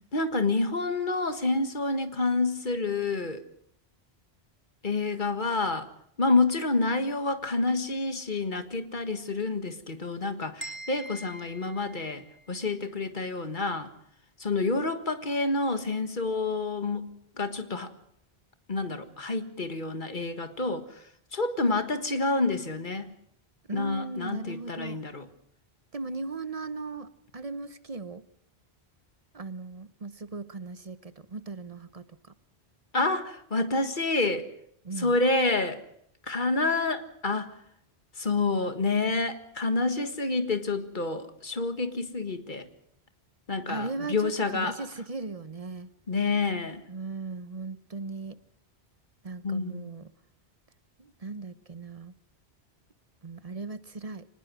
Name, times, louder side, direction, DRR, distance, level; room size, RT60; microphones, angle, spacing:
voice 1, 0.1-3.4 4.8-5.9 6.2-13.9 14.4-17.1 17.4-17.9 18.7-20.9 21.3-23.1 23.7-25.3 32.9-34.5 35.0-35.8 36.3-37.5 38.2-42.7 43.5-44.8 46.1-46.8 49.4-49.9, left 3 dB, 50° left, 1.8 m, -28 dB
sound 1, 10.6-12.6, right 1 dB, 10° right, 3.3 m, -43 dB
voice 2, 23.7-25.0 25.9-28.2 29.3-32.3 34.8-35.1 43.7-45.9 46.9-48.4 49.2-50.1 51.0-52.1 53.2-54.3, right 3 dB, 35° right, 0.9 m, -38 dB
24.5 x 20.0 x 6.2 m
omnidirectional pair, 1.1 m